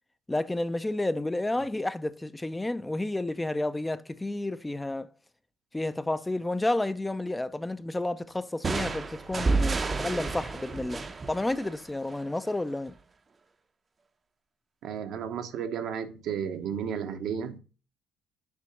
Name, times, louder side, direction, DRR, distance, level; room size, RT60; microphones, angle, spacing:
voice 1, 0.3-5.1 5.7-12.9, left 2 dB, 15° left, 0.5 m, -31 dB
sound 1, 8.6-12.3, right 3 dB, 35° right, 0.7 m, -30 dB
voice 2, 14.8-17.6, right 7 dB, 75° right, 1.0 m, -33 dB
7.0 x 3.7 x 5.8 m
cardioid pair, 85°, 0 cm